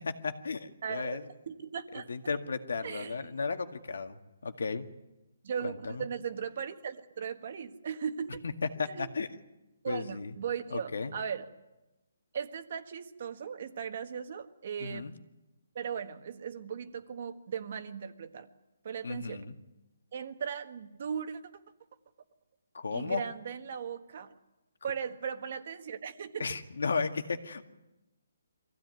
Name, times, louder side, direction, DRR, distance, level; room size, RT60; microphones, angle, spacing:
voice 1, 0.2-1.2 2.1-4.2 4.4-4.9 5.6-6.1 8.8-9.3 9.9-10.3 10.7-11.1 14.8-15.1 19.0-19.5 22.7-23.2 26.4-27.7, left 4 dB, 75° left, 7 dB, 2.0 m, -34 dB
voice 2, 0.8-1.2 1.5-2.1 2.8-3.3 5.4-8.4 8.8-9.1 9.8-11.4 12.3-15.1 15.7-18.5 18.8-19.4 20.1-21.4 22.9-24.3 24.8-26.5, right 7 dB, 40° right, 8 dB, 1.5 m, -38 dB
24.0 x 16.0 x 9.5 m, 1.0 s
hypercardioid pair, 170°, 0 cm